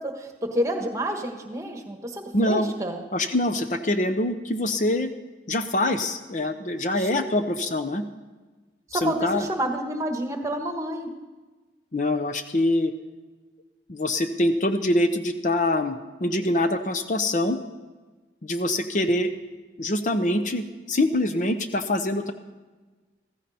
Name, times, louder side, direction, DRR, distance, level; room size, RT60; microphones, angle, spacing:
voice 1, 0.0-3.0 7.0-7.4 8.9-11.1, right 1 dB, 20° right, 4 dB, 1.4 m, -29 dB
voice 2, 2.3-2.7 3.1-5.1 5.5-8.0 9.0-9.5 11.9-12.9 13.9-17.6 18.4-19.3 19.8-22.3, left 1 dB, 45° left, 8 dB, 0.7 m, -24 dB
15.0 x 15.0 x 4.3 m, 1.3 s
head